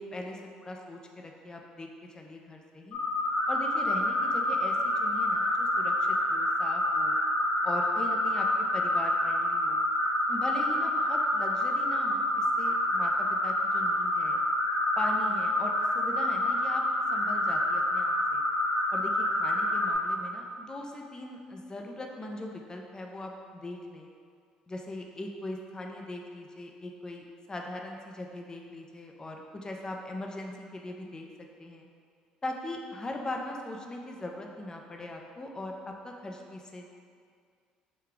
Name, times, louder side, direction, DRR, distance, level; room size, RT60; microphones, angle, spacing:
voice 1, 0.0-1.9 2.1-3.0 3.5-7.2 7.6-9.8 10.3-14.4 15.0-16.8 17.1-18.4 18.9-24.1 24.7-31.3 31.6-31.9 32.4-36.9, left 1 dB, 25° left, 1 dB, 0.5 m, -40 dB
sound 1, 2.9-19.9, left 1 dB, 75° left, 0.8 m, -27 dB
4.9 x 2.2 x 3.5 m, 2.2 s
hypercardioid pair, 65°, 3 cm